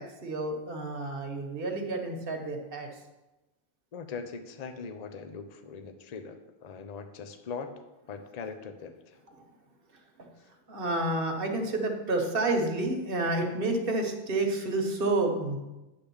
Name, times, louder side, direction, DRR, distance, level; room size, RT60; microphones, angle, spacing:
voice 1, 0.0-3.0 9.3-9.4 9.9-10.3 10.7-15.6, right 2 dB, 60° right, 3 dB, 1.3 m, -30 dB
voice 2, 3.9-7.7 8.1-9.2, left 5 dB, 45° left, 7 dB, 0.7 m, -41 dB
9.8 x 3.5 x 6.9 m, 1.0 s
omnidirectional pair, 1.1 m